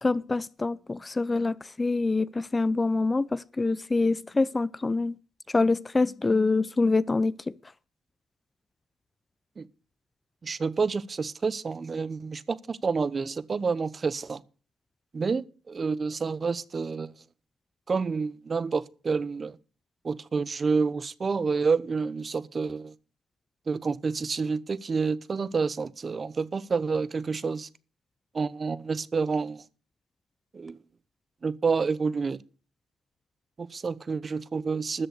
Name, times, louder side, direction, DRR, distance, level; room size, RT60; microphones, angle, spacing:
voice 1, 0.0-5.2 5.5-7.3, left 3 dB, 20° left, 0.5 m, -25 dB
voice 2, 10.4-14.4 15.1-17.2 17.9-19.6 20.0-22.9 23.7-27.7 28.3-29.6 30.5-30.8 31.4-32.4 33.6-35.1, right 4 dB, 35° right, 0.8 m, -29 dB
13.5 x 7.7 x 6.6 m
cardioid pair, 90°, 0 cm